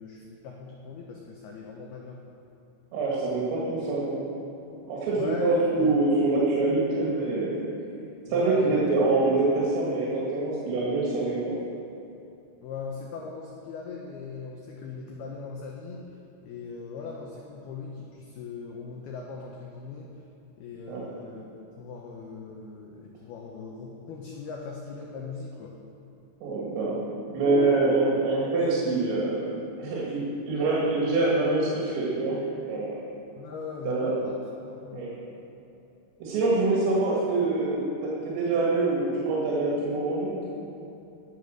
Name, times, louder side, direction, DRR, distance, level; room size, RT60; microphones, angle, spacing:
voice 1, 0.0-2.2 5.1-5.9 8.3-8.8 12.6-16.1 16.4-20.1 20.6-25.7 33.4-34.3 34.6-35.3, left 5 dB, 85° left, -1 dB, 2.2 m, -39 dB
voice 2, 2.9-4.2 4.9-7.6 8.3-11.6 20.9-21.0 26.4-27.0 27.3-29.5 29.8-32.4 32.7-33.0 33.9-34.2 34.9-35.1 36.2-40.4, right 3 dB, 80° right, -5 dB, 4.8 m, -25 dB
17.0 x 7.3 x 6.7 m, 2.8 s
omnidirectional pair, 5.9 m